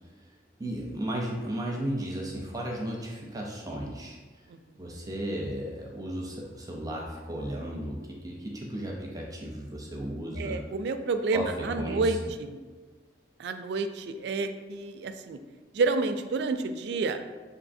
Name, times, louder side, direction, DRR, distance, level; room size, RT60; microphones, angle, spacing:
voice 1, 0.6-4.2 4.8-10.6 11.3-12.2, right 1 dB, 20° right, -2 dB, 0.5 m, -34 dB
voice 2, 10.4-12.6 13.4-15.4 15.7-17.2, right 3 dB, 70° right, 8 dB, 0.3 m, -29 dB
7.0 x 2.7 x 2.6 m, 1.4 s
head